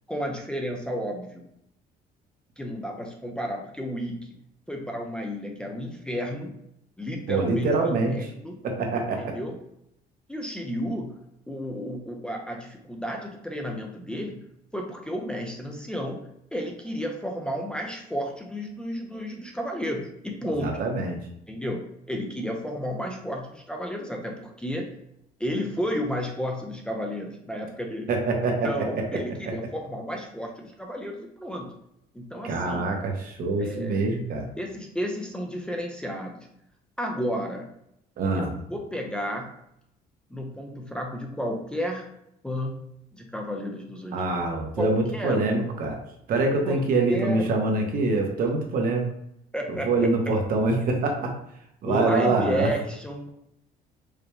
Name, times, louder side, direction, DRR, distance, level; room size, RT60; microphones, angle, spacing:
voice 1, 0.1-1.4 2.6-4.4 4.7-6.6 7.0-8.6 9.2-9.6 10.3-11.2 11.5-14.4 14.7-16.2 16.5-20.8 21.5-25.0 25.4-28.1 28.6-31.7 32.1-32.9 33.6-34.0 34.6-36.5 37.0-37.7 38.3-39.5 40.3-42.1 42.4-44.4 44.8-45.6 46.6-47.6 48.5-48.6 49.5-50.4 51.9-53.3, equal, 5° left, 0 dB, 0.5 m, -32 dB
voice 2, 7.3-8.2 8.6-9.3 20.6-21.2 28.1-28.7 32.4-34.5 38.2-38.5 44.1-46.0 46.3-49.0 49.7-51.3 51.8-52.7, right 3 dB, 60° right, 2 dB, 0.9 m, -25 dB
5.0 x 2.2 x 3.2 m, 0.77 s
cardioid pair, 110°, 17 cm